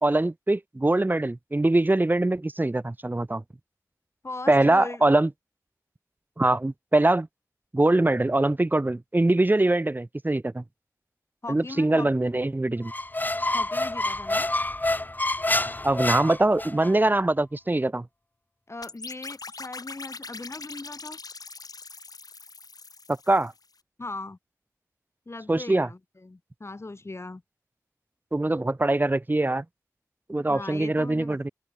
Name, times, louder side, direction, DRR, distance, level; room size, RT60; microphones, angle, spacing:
voice 1, 0.0-3.4 4.5-5.3 6.4-7.3 7.7-10.6 11.5-12.9 15.8-18.1 23.1-23.5 25.5-25.9 28.3-29.6 30.3-31.5, right 2 dB, 30° right, 2.6 m, -23 dB
voice 2, 4.2-5.0 11.4-12.1 13.5-14.5 18.7-21.2 24.0-24.4 25.3-27.4 30.5-31.4, left 2 dB, 45° left, 3.6 m, -39 dB
Squeak, 12.9-16.9, left 2 dB, 30° left, 3.0 m, -27 dB
sound 1, 18.8-23.6, left 4 dB, 75° left, 2.9 m, -42 dB
open air
wide cardioid pair, 80°, 6 cm